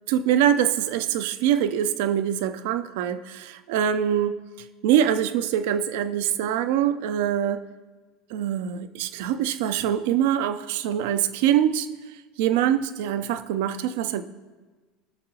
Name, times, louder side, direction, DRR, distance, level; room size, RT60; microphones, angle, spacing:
voice 1, 0.1-4.4 4.8-7.6 8.3-11.9 12.4-14.2, right 10 dB, 65° right, 10 dB, 0.6 m, -24 dB
19.5 x 6.7 x 2.9 m, 1.3 s
hypercardioid pair, 75°, 0 cm